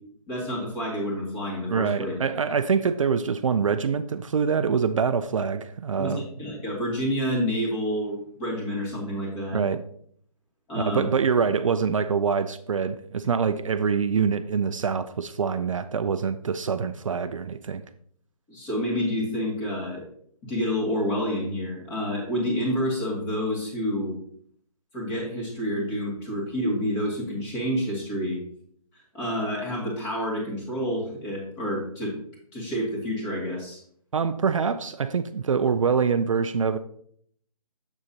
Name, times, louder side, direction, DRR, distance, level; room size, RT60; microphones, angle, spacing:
voice 1, 0.3-2.1 6.0-9.6 10.7-11.1 18.5-20.1 20.4-24.1 24.9-28.4 29.1-32.2 32.5-33.8, equal, 20° left, 2.2 m, -28 dB
voice 2, 1.7-6.2 9.5-9.8 10.8-17.8 34.1-36.8, right 6 dB, 55° right, 0.4 m, -25 dB
7.1 x 6.6 x 2.8 m
figure-of-eight pair, 150°, 20 cm